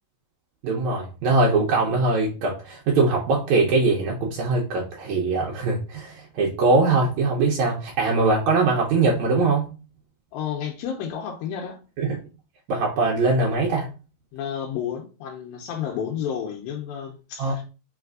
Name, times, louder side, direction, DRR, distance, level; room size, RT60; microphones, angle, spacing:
voice 1, 0.6-9.6 12.0-12.2 12.7-13.9 17.4-17.6, right 3 dB, 80° right, 1.6 m, -22 dB
voice 2, 10.3-11.8 14.3-17.6, left 8 dB, 85° left, 2.3 m, -31 dB
5.2 x 3.2 x 2.4 m
omnidirectional pair, 4.2 m